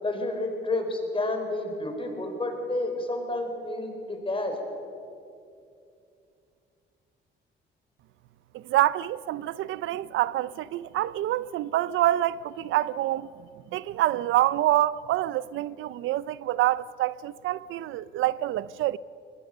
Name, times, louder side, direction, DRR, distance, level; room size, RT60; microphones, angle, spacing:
voice 1, 0.0-4.8, left 2 dB, 25° left, 4.4 m, -30 dB
voice 2, 8.5-13.3 13.7-19.0, right 14 dB, 80° right, 0.5 m, -26 dB
22.5 x 20.0 x 6.6 m
cardioid pair, 90°, 20 cm